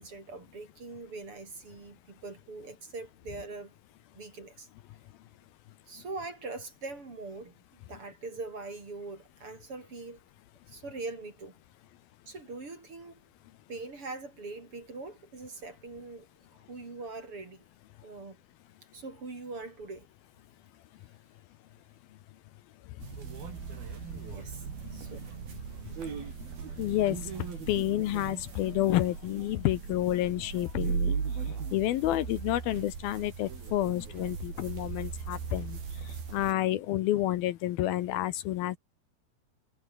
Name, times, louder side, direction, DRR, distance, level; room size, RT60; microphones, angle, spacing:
voice 1, 0.0-3.7 4.1-4.7 5.9-7.6 7.9-10.2 10.7-11.6 12.3-13.2 13.7-17.6 18.0-18.4 18.9-20.1 24.3-25.2, right 3 dB, 35° right, 5.6 m, -42 dB
sound 1, 23.0-36.5, right 6 dB, 70° right, 6.2 m, -38 dB
voice 2, 26.8-27.3 27.7-31.1 31.7-35.8 36.0-38.8, left 14 dB, 75° left, 2.8 m, -29 dB
omnidirectional pair, 4.5 m